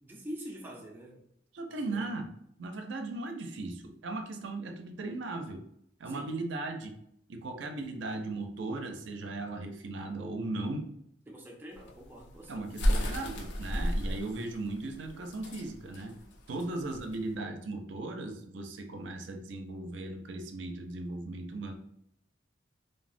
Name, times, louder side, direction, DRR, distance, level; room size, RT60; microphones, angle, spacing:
voice 1, 0.0-1.2 1.7-2.1 6.0-6.3 11.3-12.7 16.5-16.8, equal, 10° right, -1 dB, 0.4 m, -45 dB
voice 2, 1.5-2.3 2.6-5.6 6.0-7.0 7.3-10.9 12.5-16.1 16.5-21.7, right 2 dB, 75° right, 4 dB, 0.4 m, -37 dB
Pigeons flying, 11.7-17.3, equal, 65° left, 0.4 m, -32 dB
3.3 x 2.0 x 2.5 m, 0.72 s
head